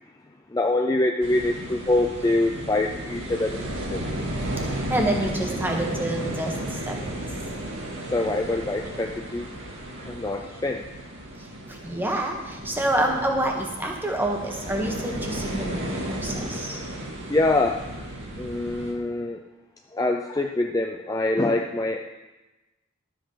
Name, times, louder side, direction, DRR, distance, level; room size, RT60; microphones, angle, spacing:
voice 1, 0.5-4.0 8.1-9.5 10.0-10.9 17.3-17.9 18.4-19.4 19.9-22.1, left 2 dB, 15° left, 3 dB, 0.4 m, -25 dB
sound 1, 1.2-18.9, right 1 dB, 60° right, 2.0 m, -34 dB
voice 2, 4.7-6.5 6.9-7.0 11.8-16.8, right 1 dB, 10° right, 1 dB, 1.4 m, -27 dB
12.0 x 7.7 x 5.7 m, 1.1 s
head